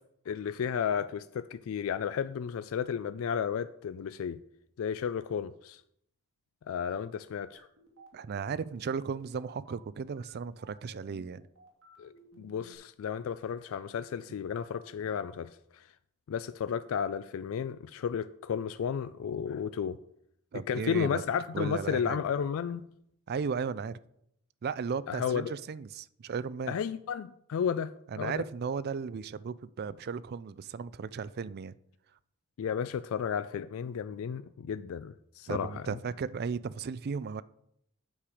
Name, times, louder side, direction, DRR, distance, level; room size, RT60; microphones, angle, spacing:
voice 1, 0.3-4.4 4.8-5.8 6.7-7.7 12.0-15.9 16.3-20.0 20.7-22.9 25.1-25.5 26.7-28.4 32.6-35.8, left 7 dB, 65° left, 0.3 m, -33 dB
sound 1, 7.5-12.7, equal, 65° right, 2.4 m, -57 dB
voice 2, 8.1-11.4 20.5-21.2 21.5-22.2 23.3-24.0 24.6-26.8 28.1-31.7 35.5-37.4, right 5 dB, 50° right, 0.4 m, -35 dB
8.6 x 6.7 x 4.9 m
head